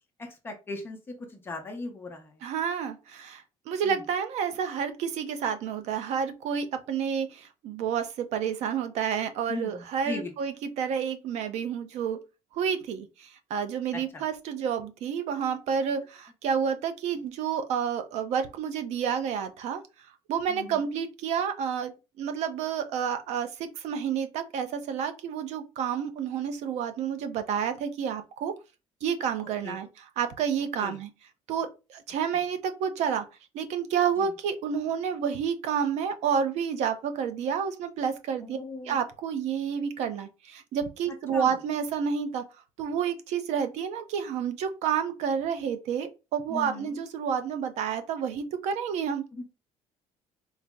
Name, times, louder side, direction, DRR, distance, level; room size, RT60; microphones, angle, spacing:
voice 1, 0.2-2.4 3.8-4.0 9.5-10.3 20.5-20.8 29.6-29.8 30.8-31.0 34.2-34.3 38.4-39.0 41.3-41.5 46.5-47.0 49.3-49.4, left 3 dB, 15° left, 0.7 m, -38 dB
voice 2, 2.4-12.2 12.5-19.8 20.3-21.9 22.2-28.5 29.0-31.1 31.5-33.3 33.5-38.6 38.8-42.4 42.8-49.2, right 7 dB, 65° right, 0.6 m, -30 dB
4.0 x 2.0 x 3.4 m
cardioid pair, 180°, 12 cm